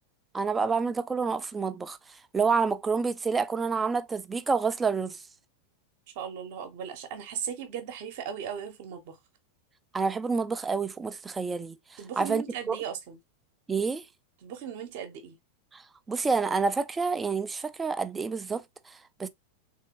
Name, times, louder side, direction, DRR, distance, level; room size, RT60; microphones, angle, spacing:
voice 1, 0.3-2.0 2.3-5.2 9.9-12.8 13.7-14.0 15.7-15.8 16.1-19.3, right 5 dB, 15° right, 0.4 m, -28 dB
voice 2, 6.1-9.2 12.0-13.2 14.4-15.4, right 8 dB, 50° right, 0.8 m, -37 dB
3.6 x 2.7 x 2.8 m
figure-of-eight pair, 90°, 0 cm